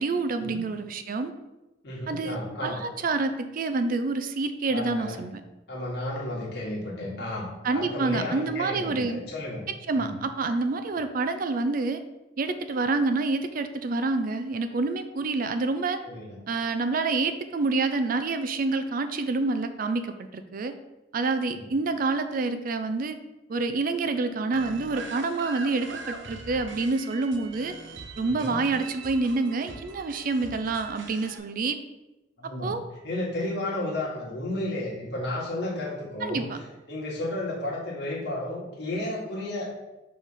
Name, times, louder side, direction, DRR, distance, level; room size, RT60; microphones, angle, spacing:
voice 1, 0.0-1.3 2.1-5.4 7.6-9.2 9.9-12.0 12.4-16.0 16.5-20.7 21.1-23.2 23.5-27.7 28.2-31.8 32.6-32.8 36.2-36.6, right 3 dB, 50° right, 9 dB, 0.4 m, -27 dB
voice 2, 1.8-2.8 4.7-5.2 5.7-9.6 9.9-10.1 16.0-16.3 21.5-21.7 28.2-28.7 32.4-32.7 33.0-36.4 36.9-39.7, left 1 dB, 65° left, -3 dB, 1.7 m, -32 dB
sound 1, 24.5-31.4, right 4 dB, 90° right, 0.7 m, -42 dB
5.4 x 3.3 x 5.6 m, 1.0 s
head